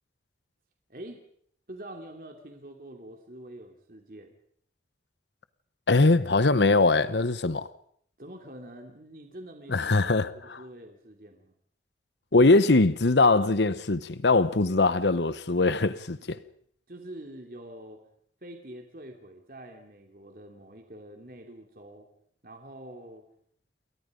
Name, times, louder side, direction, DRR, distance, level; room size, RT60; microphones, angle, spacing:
voice 1, 0.9-1.2 1.7-4.3 8.2-11.5 16.9-18.0 18.4-22.1 22.4-23.2, right 1 dB, 55° right, 3.1 m, -45 dB
voice 2, 5.9-7.7 9.7-10.6 12.3-16.4, left 3 dB, 85° left, 1.0 m, -22 dB
29.0 x 23.0 x 5.3 m
head